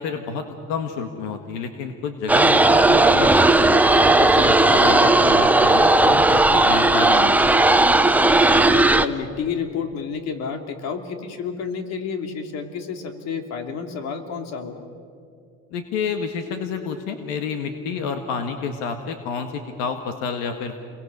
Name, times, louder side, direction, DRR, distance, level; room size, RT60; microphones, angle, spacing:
voice 1, 0.0-3.8 4.2-7.5 15.7-20.8, left 6 dB, 90° left, 6 dB, 1.8 m, -29 dB
sound 1, 2.3-9.1, right 2 dB, 5° right, 0.8 m, -16 dB
voice 2, 8.4-14.8, left 6 dB, 60° left, 6 dB, 2.9 m, -30 dB
30.0 x 22.5 x 6.8 m, 2.4 s
cardioid pair, 125°, 30 cm